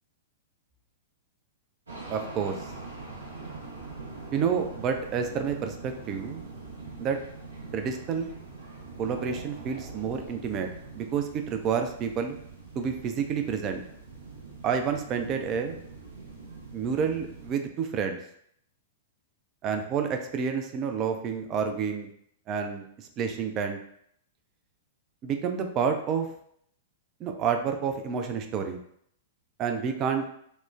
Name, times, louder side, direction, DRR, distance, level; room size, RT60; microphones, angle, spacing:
sound 1, 1.9-17.6, right 3 dB, 85° right, 0.8 m, -43 dB
voice 1, 2.1-2.7 4.3-6.4 7.0-7.2 7.7-8.3 9.0-12.4 12.8-13.8 14.6-15.8 16.7-18.2 19.6-22.1 22.5-23.8 25.2-26.3 27.2-28.8 29.6-30.2, right 6 dB, 35° right, 6 dB, 0.4 m, -29 dB
2.9 x 2.0 x 2.3 m, 0.68 s
figure-of-eight pair, 105°, 0 cm